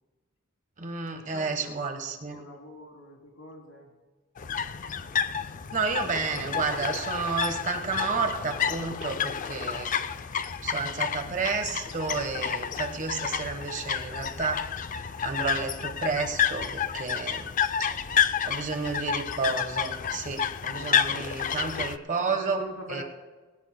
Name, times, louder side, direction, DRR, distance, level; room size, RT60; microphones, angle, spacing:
voice 1, 0.8-2.4 5.7-9.9 10.6-14.7 15.2-17.5 18.4-22.6 22.9-23.0, right 4 dB, 40° right, 5 dB, 1.3 m, -31 dB
voice 2, 1.3-3.9 17.8-18.4 22.3-23.0, equal, 75° left, 0 dB, 3.4 m, -44 dB
sound 1, 4.4-22.0, left 7 dB, 40° left, 0.5 m, -30 dB
21.0 x 17.5 x 2.2 m, 1.3 s
head